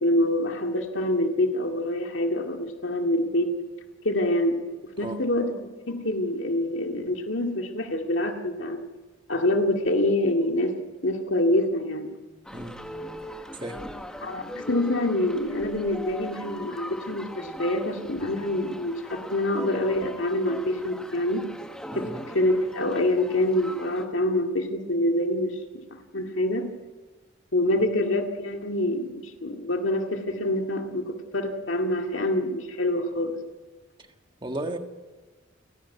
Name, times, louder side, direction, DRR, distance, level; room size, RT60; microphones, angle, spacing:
voice 1, 0.0-3.5 4.0-4.6 5.0-8.8 9.3-10.7 11.0-12.1 14.2-21.4 21.9-26.7 27.5-33.4, left 1 dB, 65° left, 3 dB, 2.1 m, -26 dB
sound 1, 12.4-24.0, equal, 5° left, 1.3 m, -40 dB
voice 2, 34.4-34.8, right 1 dB, 25° right, 5 dB, 1.6 m, -33 dB
29.5 x 11.5 x 9.4 m, 1.3 s
head